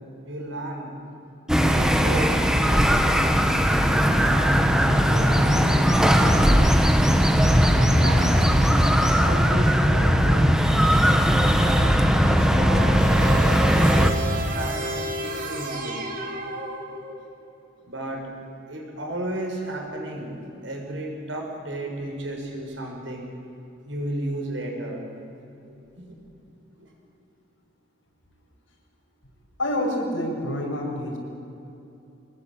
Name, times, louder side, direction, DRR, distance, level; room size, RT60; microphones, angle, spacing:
voice 1, 0.2-0.9 1.6-3.4 4.2-5.8 6.1-6.8 7.7-8.5 9.1-10.5 11.3-13.0 14.2-16.0 17.8-18.3 18.7-20.4 20.6-23.3 23.9-25.0 25.7-26.2 26.8-26.9, right 1 dB, 75° right, 1 dB, 6.4 m, -34 dB
sound 1, 1.5-14.1, equal, 5° right, 1.4 m, -19 dB
sound 2, 13.0-17.3, right 2 dB, 45° right, 3.1 m, -31 dB
voice 2, 29.6-31.2, left 1 dB, 90° left, 0 dB, 6.6 m, -27 dB
25.5 x 20.5 x 8.8 m, 2.8 s
head